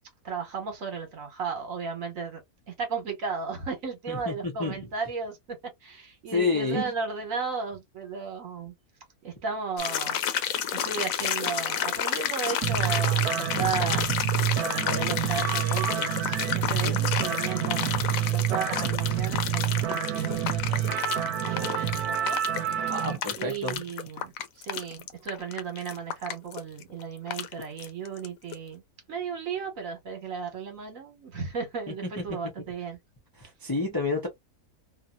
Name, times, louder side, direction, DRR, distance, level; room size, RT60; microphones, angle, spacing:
voice 1, 0.2-2.4 2.7-5.4 5.8-8.7 9.2-10.3 10.7-14.0 14.6-22.4 23.4-28.8 29.1-33.0, right 5 dB, 60° right, 1.5 m, -35 dB
voice 2, 4.1-4.8 6.3-6.8 16.7-17.0 22.9-23.8 33.4-34.3, left 3 dB, 25° left, 0.5 m, -29 dB
sound 1, 9.8-28.3 28.5-28.6, left 9 dB, 70° left, 1.0 m, -31 dB
sound 2, 12.6-23.2, right 12 dB, 85° right, 1.2 m, -28 dB
2.7 x 2.7 x 2.4 m
omnidirectional pair, 1.6 m